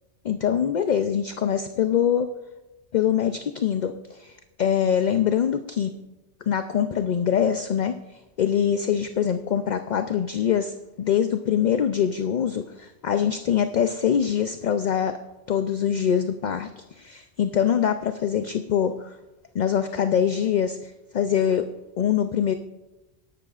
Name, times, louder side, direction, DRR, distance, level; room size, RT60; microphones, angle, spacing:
voice 1, 0.2-2.3 2.9-5.9 6.5-8.0 8.4-15.2 15.5-19.2 19.5-21.7 22.0-22.5, left 8 dB, 55° left, 8 dB, 0.5 m, -24 dB
21.5 x 11.5 x 2.4 m, 1.1 s
omnidirectional pair, 1.2 m